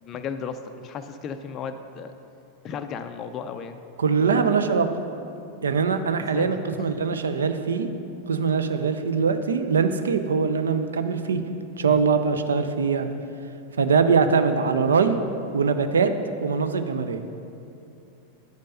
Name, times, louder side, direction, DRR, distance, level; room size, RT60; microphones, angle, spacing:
voice 1, 0.0-2.1 2.6-3.8 6.2-6.9 11.9-12.0, left 6 dB, 30° left, 7 dB, 0.3 m, -35 dB
voice 2, 4.0-4.9 5.6-7.9 8.3-11.4 11.8-13.1 13.8-15.2 15.5-16.1 16.4-17.2, right 5 dB, 70° right, 9 dB, 0.4 m, -22 dB
9.2 x 5.2 x 5.4 m, 2.7 s
figure-of-eight pair, 90°, 0 cm